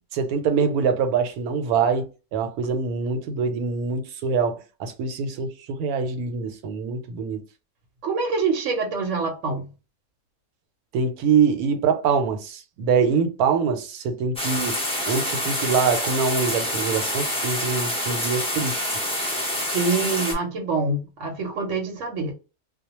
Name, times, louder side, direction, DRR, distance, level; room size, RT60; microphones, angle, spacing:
voice 1, 0.1-7.4 10.9-14.8 15.1-19.1, right 5 dB, 90° right, 1.1 m, -24 dB
voice 2, 8.0-9.7 19.6-22.3, right 4 dB, 65° right, 0.9 m, -25 dB
sound 1, 14.4-20.3, left 1 dB, 5° left, 0.4 m, -27 dB
2.2 x 2.2 x 2.9 m
omnidirectional pair, 1.5 m